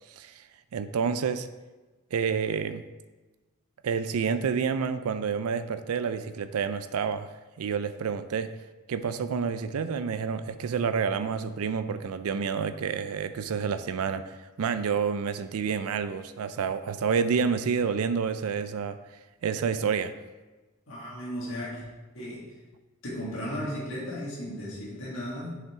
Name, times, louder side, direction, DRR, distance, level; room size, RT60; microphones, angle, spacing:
voice 1, 0.7-1.5 2.1-2.8 3.8-7.3 7.6-8.5 8.9-19.0 19.4-20.1, right 6 dB, 85° right, 11 dB, 0.4 m, -29 dB
voice 2, 20.9-21.8 22.1-22.5 23.0-25.6, equal, 60° left, -6 dB, 1.9 m, -35 dB
7.3 x 5.7 x 3.6 m, 1.2 s
head